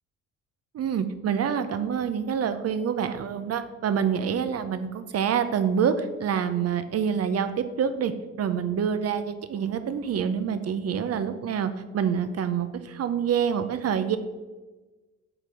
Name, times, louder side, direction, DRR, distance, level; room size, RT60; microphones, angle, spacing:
voice 1, 0.7-8.1 8.4-14.2, right 7 dB, 55° right, 10 dB, 0.7 m, -26 dB
7.9 x 4.4 x 5.0 m, 1.2 s
cardioid pair, 90°, 30 cm